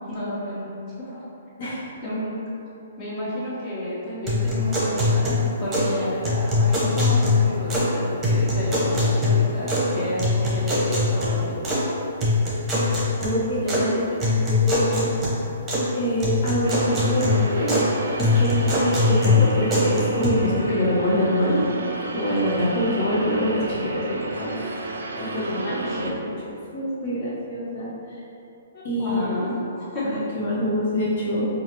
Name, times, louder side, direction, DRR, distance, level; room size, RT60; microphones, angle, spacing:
voice 1, 0.1-1.2 1.8-2.5 3.0-11.6 25.6-26.1 28.7-30.3, left 1 dB, 30° left, -9 dB, 1.3 m, -31 dB
sound 1, 4.3-5.9 6.2-7.9 8.2-9.9 10.2-11.8 12.2-13.8 14.2-15.9 16.2-17.9 18.2-20.3, left 2 dB, 15° right, 1.0 m, -22 dB
voice 2, 13.2-15.1 15.9-17.8 18.2-21.6 22.1-24.8 25.2-26.3 26.7-27.9 28.8-29.4 30.0-31.5, equal, 55° left, -8 dB, 1.3 m, -25 dB
sound 2, 16.6-26.1, right 2 dB, 80° right, 0.4 m, -32 dB
4.5 x 2.5 x 3.0 m, 2.8 s
hypercardioid pair, 140°, 0 cm